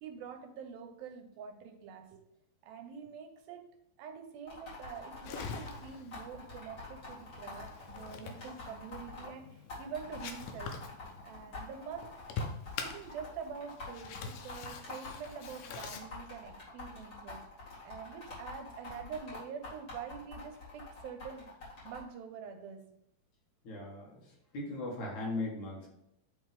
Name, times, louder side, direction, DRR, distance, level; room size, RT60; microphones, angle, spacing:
voice 1, 0.0-2.2 2.6-3.6 4.0-10.7 11.2-12.1 12.8-17.4 17.8-21.5 21.8-22.8, right 6 dB, 80° right, 5 dB, 2.6 m, -46 dB
sound 1, 4.5-9.3 9.7-22.0, left 3 dB, 35° left, 2.5 m, -46 dB
sound 2, 5.2-16.0, left 5 dB, 80° left, 2.1 m, -45 dB
voice 2, 23.6-25.9, left 2 dB, 60° left, -3 dB, 2.6 m, -38 dB
10.0 x 3.5 x 3.6 m, 0.81 s
omnidirectional pair, 4.2 m